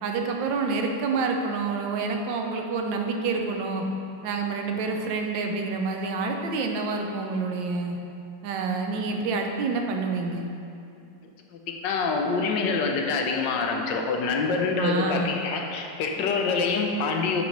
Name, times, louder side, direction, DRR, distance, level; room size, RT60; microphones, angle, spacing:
voice 1, 0.0-3.9 4.2-8.0 8.4-10.5 14.8-15.3, right 4 dB, 85° right, 3 dB, 1.3 m, -28 dB
voice 2, 11.7-17.4, left 4 dB, 80° left, 2 dB, 1.3 m, -26 dB
6.8 x 3.0 x 5.1 m, 2.6 s
omnidirectional pair, 2.0 m